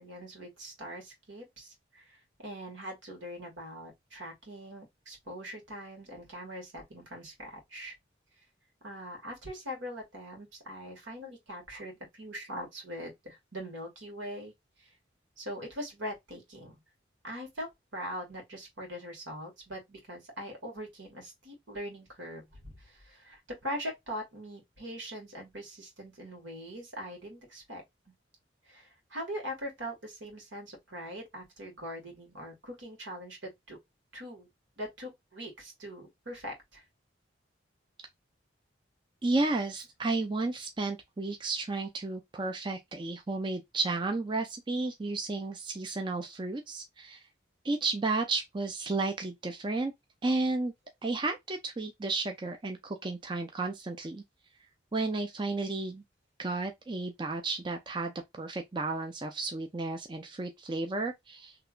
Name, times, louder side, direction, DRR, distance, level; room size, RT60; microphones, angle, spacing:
voice 1, 0.0-7.9 8.8-14.5 14.8-14.9 15.4-16.8 17.2-27.8 28.6-33.8 34.1-34.5 34.8-36.8, equal, 80° right, 1.7 m, -42 dB
voice 2, 39.2-47.2 47.6-49.9 50.2-50.7 51.0-54.2 54.9-56.0 56.4-61.6, right 3 dB, 25° right, 0.4 m, -32 dB
3.3 x 2.8 x 2.4 m
head